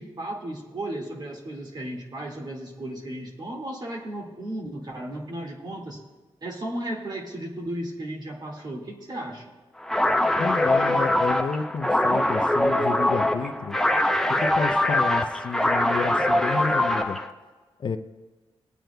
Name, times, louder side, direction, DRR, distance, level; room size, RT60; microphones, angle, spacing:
voice 1, 0.0-6.0 6.4-9.5 10.9-11.1, right 1 dB, 45° right, 1 dB, 1.9 m, -35 dB
sound 1, 9.8-17.3, left 1 dB, 5° left, 0.7 m, -23 dB
voice 2, 10.4-13.8 14.4-17.2 17.8-18.0, left 5 dB, 55° left, 8 dB, 0.5 m, -30 dB
19.0 x 9.0 x 2.3 m, 1.3 s
cardioid pair, 95°, 10 cm